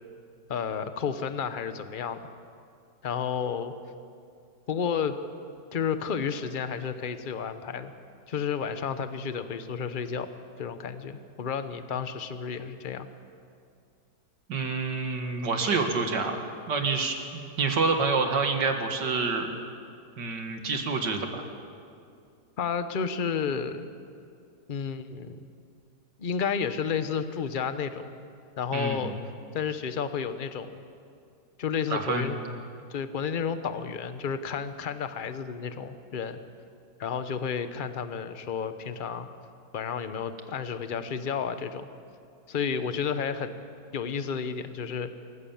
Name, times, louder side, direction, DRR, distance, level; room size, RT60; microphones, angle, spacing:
voice 1, 0.5-2.2 3.0-3.7 4.7-5.2 5.7-7.9 8.3-10.3 10.6-13.1 22.6-23.9 24.7-25.4 26.2-28.1 28.6-29.1 29.5-30.8 31.6-32.4 32.9-36.4 37.0-39.3 39.7-41.9 42.5-43.6 43.9-45.1, left 6 dB, 40° left, 10 dB, 0.8 m, -31 dB
voice 2, 14.5-16.4 16.7-19.5 20.2-21.4 28.7-29.1 31.9-32.3, right 4 dB, 80° right, 4 dB, 2.4 m, -27 dB
26.0 x 14.5 x 7.2 m, 2.4 s
omnidirectional pair, 1.9 m